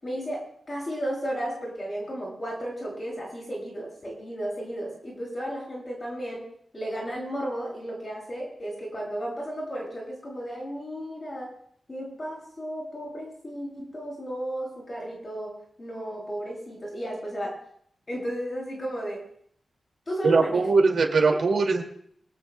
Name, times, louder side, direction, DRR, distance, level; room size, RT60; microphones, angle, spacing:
voice 1, 0.0-6.4 6.7-11.5 11.9-17.5 18.1-19.2 20.1-20.6 21.3-21.4, right 1 dB, 30° left, -3 dB, 7.9 m, -34 dB
voice 2, 20.2-21.8, right 4 dB, 65° right, 2 dB, 2.3 m, -21 dB
25.5 x 19.0 x 2.3 m, 0.65 s
wide cardioid pair, 135°, 0 cm